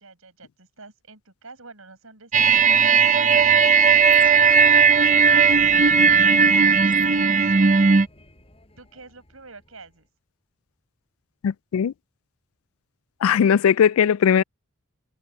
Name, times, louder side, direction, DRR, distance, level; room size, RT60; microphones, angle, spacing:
voice 1, 0.0-4.7 5.3-7.1 7.4-7.9 8.8-10.1, right 3 dB, 80° right, 7.6 m, -47 dB
sound 1, 2.3-8.1, right 6 dB, 35° right, 0.6 m, -16 dB
sound 2, 3.4-10.1, left 1 dB, 30° left, 5.8 m, -50 dB
sound 3, 4.1-7.8, right 1 dB, 5° right, 5.1 m, -52 dB
voice 2, 11.4-11.9 13.2-14.4, left 8 dB, 85° left, 0.3 m, -18 dB
head